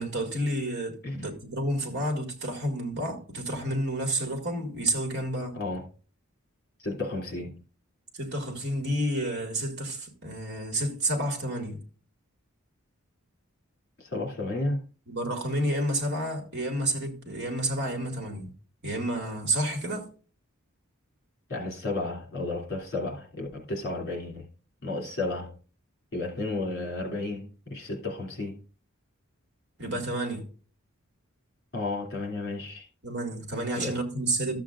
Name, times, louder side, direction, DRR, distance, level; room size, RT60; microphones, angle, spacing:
voice 1, 0.0-5.6 8.1-11.8 15.1-18.5 18.8-20.1 29.8-30.4 33.0-34.6, right 1 dB, 55° right, 2.1 m, -30 dB
voice 2, 5.5-5.9 6.8-7.6 14.0-14.8 21.5-24.5 24.8-25.5 26.1-28.6 31.7-32.9 33.8-34.0, left 2 dB, 50° left, 2.7 m, -32 dB
13.0 x 7.5 x 2.5 m
head